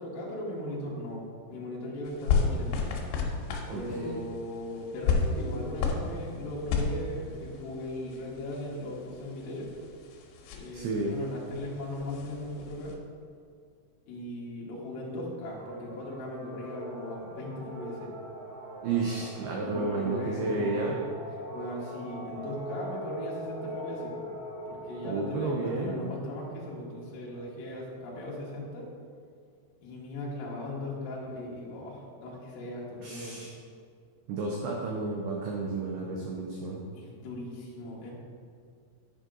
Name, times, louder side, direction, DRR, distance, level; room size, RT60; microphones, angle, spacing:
voice 1, 0.0-3.0 3.7-9.7 10.5-12.9 14.1-18.1 19.6-21.0 21.3-24.3 24.7-28.9 29.8-33.4 36.9-38.1, left 1 dB, 60° left, -5 dB, 2.6 m, -38 dB
sound 1, 2.1-13.0, left 5 dB, 85° left, 3.4 m, -33 dB
voice 2, 3.7-4.2 10.7-11.2 18.8-21.0 25.1-26.0 33.0-33.5 34.3-36.8, right 3 dB, 90° right, 0 dB, 2.3 m, -31 dB
sound 2, 15.6-27.4, right 1 dB, 60° right, 3.2 m, -42 dB
9.8 x 5.4 x 3.8 m, 2.2 s
omnidirectional pair, 5.6 m